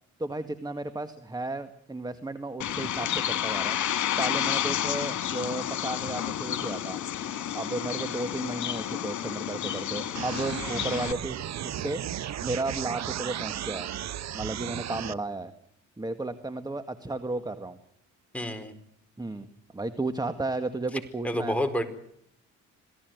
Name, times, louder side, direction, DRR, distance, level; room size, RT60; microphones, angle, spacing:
voice 1, 0.2-3.8 4.2-7.0 7.5-11.4 11.6-12.0 12.4-13.9 14.3-15.5 16.0-17.8 19.2-19.5 19.7-21.6, right 2 dB, 15° right, 10 dB, 1.8 m, -33 dB
Bird, 2.6-11.1, left 11 dB, 70° left, 2.8 m, -30 dB
sound 1, 10.1-15.1, right 11 dB, 65° right, 1.1 m, -35 dB
voice 2, 18.3-18.7 21.2-21.8, equal, 5° left, 5 dB, 4.7 m, -28 dB
27.0 x 17.5 x 9.4 m, 0.70 s
cardioid pair, 90°, 30 cm